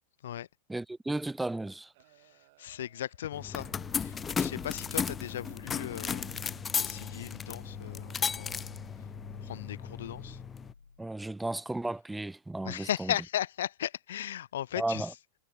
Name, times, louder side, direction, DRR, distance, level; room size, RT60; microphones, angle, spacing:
voice 1, 0.7-1.9 11.0-13.1 14.8-15.1, right 2 dB, 5° right, 1.0 m, -34 dB
sound 1, 1.1-6.5 7.0-7.2, right 22 dB, 50° right, 7.3 m, -64 dB
voice 2, 2.2-3.7 4.0-6.3 6.8-8.6 9.4-10.4 12.6-15.1, left 11 dB, 60° left, 1.9 m, -37 dB
sound 2, 3.3-11.1, left 4 dB, 75° left, 0.8 m, -50 dB
sound 3, 3.3-10.7, left 6 dB, 20° left, 0.6 m, -35 dB
figure-of-eight pair, 90°, 0 cm